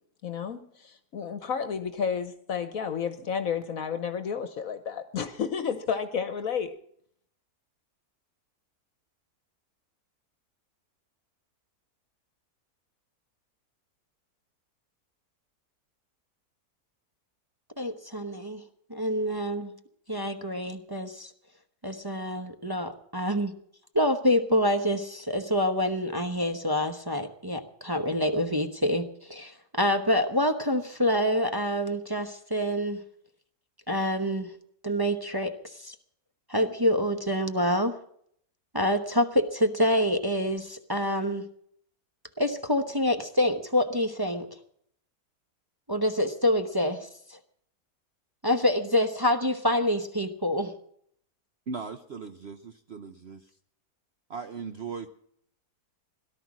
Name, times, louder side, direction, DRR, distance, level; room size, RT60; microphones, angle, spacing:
voice 1, 0.2-6.8, left 7 dB, 65° left, 10 dB, 1.3 m, -31 dB
voice 2, 17.8-18.6 18.9-19.7 20.1-21.3 21.8-23.5 23.9-33.0 33.9-34.5 34.8-35.9 36.5-37.9 38.7-41.5 42.4-44.5 45.9-47.4 48.4-50.7, left 1 dB, 20° right, 6 dB, 0.8 m, -26 dB
voice 3, 51.7-53.5 54.3-55.1, right 5 dB, 50° right, 8 dB, 0.9 m, -38 dB
18.0 x 12.0 x 6.1 m, 0.66 s
omnidirectional pair, 1.6 m